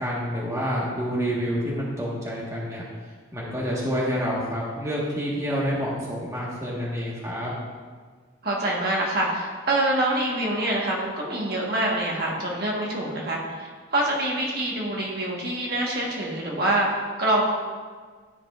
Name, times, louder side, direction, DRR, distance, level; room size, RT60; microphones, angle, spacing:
voice 1, 0.0-2.8 3.3-7.5, equal, 15° right, -6 dB, 1.3 m, -28 dB
voice 2, 8.4-16.9 17.2-17.4, right 1 dB, 50° right, -3 dB, 1.3 m, -25 dB
12.5 x 5.0 x 2.4 m, 1.5 s
head